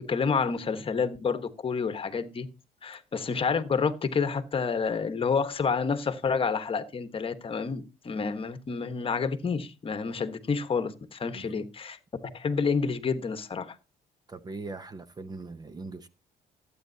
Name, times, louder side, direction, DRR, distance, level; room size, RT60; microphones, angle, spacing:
voice 1, 0.0-2.5 2.8-12.0 12.3-13.8, left 5 dB, 30° left, 1.2 m, -29 dB
voice 2, 14.3-16.1, right 3 dB, 25° right, 0.8 m, -40 dB
16.5 x 8.7 x 2.8 m
cardioid pair, 110°, 17 cm